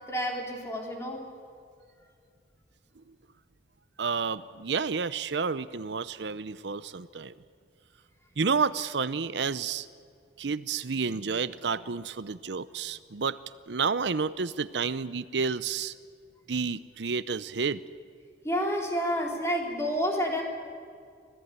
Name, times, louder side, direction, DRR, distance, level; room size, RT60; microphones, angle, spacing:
voice 1, 0.1-1.2 18.4-20.4, equal, 15° left, 0 dB, 3.8 m, -29 dB
voice 2, 4.0-7.3 8.4-9.9 10.4-13.4 13.7-15.9 16.5-17.8, right 5 dB, 75° right, 15 dB, 0.7 m, -30 dB
25.5 x 17.0 x 9.5 m, 2.3 s
head